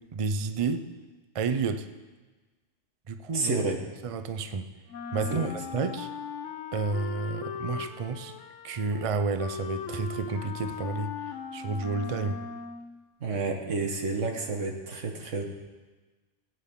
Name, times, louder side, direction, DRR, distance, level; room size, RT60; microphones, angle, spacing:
voice 1, 0.1-0.8 1.3-1.9 3.1-3.5 4.0-4.7 5.1-6.1 6.7-8.3 8.6-12.4, right 4 dB, 40° right, 9 dB, 0.5 m, -30 dB
voice 2, 3.3-3.8 5.3-5.5 13.2-15.4, right 3 dB, 90° right, 3 dB, 1.6 m, -30 dB
Wind instrument woodwind instrument, 4.9-13.0, left 5 dB, 85° left, 1.1 m, -39 dB
18.0 x 8.9 x 3.7 m, 1.3 s
omnidirectional pair, 1.2 m